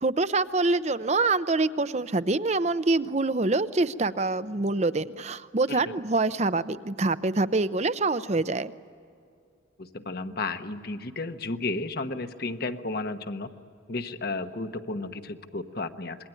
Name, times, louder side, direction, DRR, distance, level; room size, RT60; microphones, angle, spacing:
voice 1, 0.0-8.7, right 3 dB, 35° right, 13 dB, 0.7 m, -25 dB
voice 2, 9.8-13.5 13.9-16.3, left 3 dB, 55° left, 8 dB, 1.2 m, -33 dB
27.0 x 22.5 x 9.1 m, 2.3 s
head